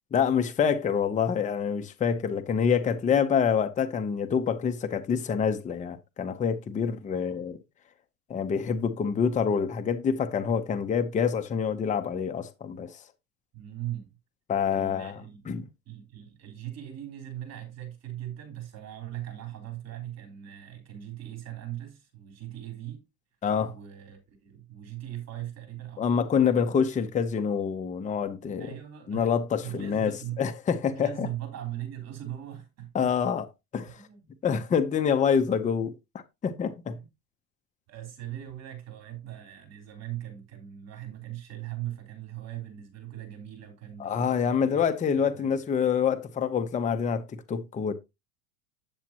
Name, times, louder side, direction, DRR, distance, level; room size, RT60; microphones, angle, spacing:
voice 1, 0.1-7.6 8.3-13.0 14.5-15.2 15.5-15.6 23.4-23.7 26.0-28.7 29.1-31.3 32.9-33.5 33.7-34.0 34.4-35.9 36.4-37.0 44.0-47.9, left 7 dB, 15° left, 0.7 m, -26 dB
voice 2, 13.5-14.1 14.7-15.5 15.8-23.0 23.7-26.7 28.6-29.3 29.6-30.4 30.9-33.1 33.9-34.2 36.9-37.1 37.9-44.8 45.3-45.5, right 12 dB, 35° right, 3.5 m, -40 dB
8.8 x 7.2 x 2.9 m
supercardioid pair, 130°, 42 cm